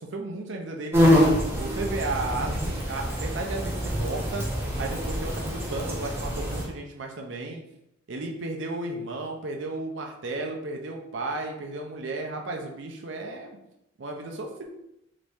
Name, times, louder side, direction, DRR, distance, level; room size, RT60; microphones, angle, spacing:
voice 1, 0.1-1.2 1.6-4.5 4.8-7.6 8.1-13.6 14.0-14.7, right 2 dB, 60° right, 2 dB, 0.5 m, -34 dB
sound 1, 0.9-6.6, equal, 10° right, 0.5 m, -25 dB
2.9 x 2.6 x 3.4 m, 0.83 s
head